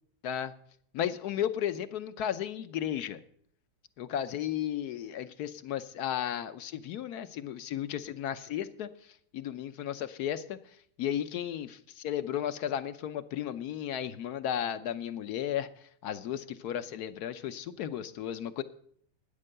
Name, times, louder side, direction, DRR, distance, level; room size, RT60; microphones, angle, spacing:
voice 1, 0.2-0.5 0.9-3.2 4.0-8.9 9.3-10.6 11.0-15.7 16.0-18.6, left 10 dB, 75° left, 12 dB, 1.3 m, -34 dB
12.5 x 9.9 x 6.7 m, 0.64 s
omnidirectional pair, 1.8 m